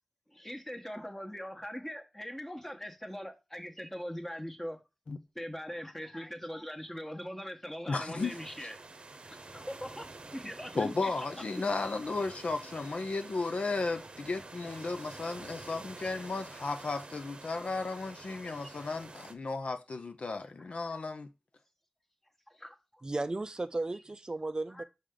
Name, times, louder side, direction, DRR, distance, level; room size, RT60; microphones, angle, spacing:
voice 1, 0.3-4.8 5.3-8.8 9.5-11.4 14.0-14.1 16.0-16.1 18.2-18.8 20.6-20.7 22.5-23.0 24.7-24.8, equal, 10° left, 1.2 m, -42 dB
voice 2, 7.9-8.3 10.8-21.3, left 3 dB, 70° left, 0.7 m, -34 dB
sound 1, 8.2-19.3, right 3 dB, 55° right, 0.8 m, -48 dB
voice 3, 23.0-24.8, right 2 dB, 35° right, 0.4 m, -35 dB
5.6 x 5.0 x 3.7 m
wide cardioid pair, 65°, 2 cm